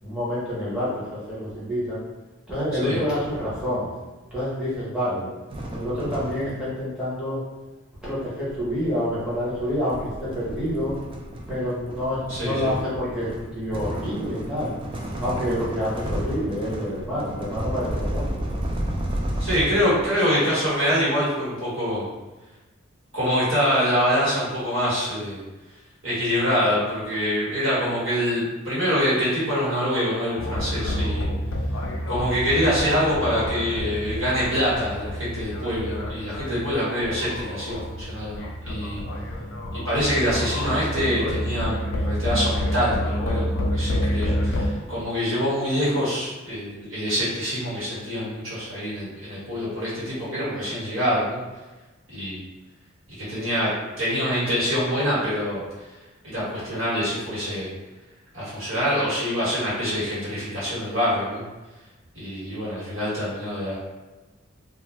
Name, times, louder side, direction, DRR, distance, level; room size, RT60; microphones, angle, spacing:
voice 1, 0.0-2.0 2.5-3.9 4.3-5.2 5.7-7.4 8.0-11.0 11.5-14.7 15.2-18.8, equal, 5° right, -11 dB, 0.8 m, -28 dB
sound 1, 5.5-6.8 8.0-20.3, right 1 dB, 25° right, 0.3 m, -32 dB
voice 2, 12.3-12.7 19.4-22.1 23.1-25.4 26.0-31.3 32.1-39.0 39.7-51.4 52.1-52.4 53.2-53.7 54.0-55.6 56.2-57.7 58.3-61.4 62.1-63.8, equal, 75° right, -9 dB, 1.3 m, -25 dB
sound 2, 30.4-44.7, equal, 70° left, 0.4 m, -28 dB
2.3 x 2.2 x 3.1 m, 1.2 s
head